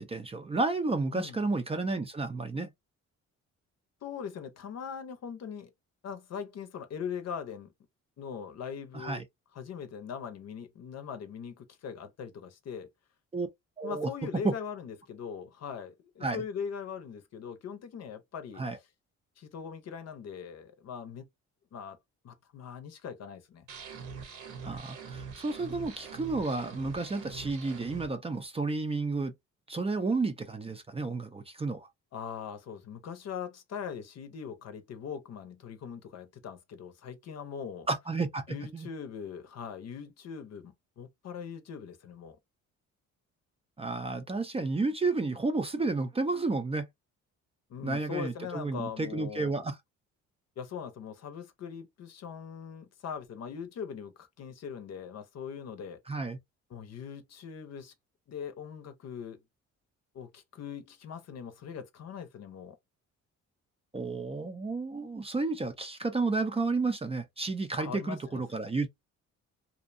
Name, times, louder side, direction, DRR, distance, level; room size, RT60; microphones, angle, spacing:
voice 1, 0.0-2.7 8.9-9.2 13.3-13.5 13.8-14.1 14.4-14.5 16.2-16.4 18.6-18.8 24.6-29.3 29.7-31.9 37.9-38.4 38.7-38.9 43.8-46.9 47.8-49.8 56.1-56.4 63.9-68.9, right 3 dB, 20° right, 0.4 m, -31 dB
voice 2, 4.0-5.7 6.0-7.7 8.2-9.2 9.5-12.9 13.8-18.7 19.4-21.3 21.7-22.0 22.2-23.7 32.1-37.9 38.5-42.4 47.7-49.7 50.6-56.0 56.7-57.9 58.3-59.4 60.1-62.8 67.8-68.4, left 7 dB, 60° left, 0.7 m, -41 dB
sound 1, 23.7-28.1, right 5 dB, 80° right, 1.0 m, -43 dB
2.6 x 2.1 x 2.5 m
cardioid pair, 90°, 30 cm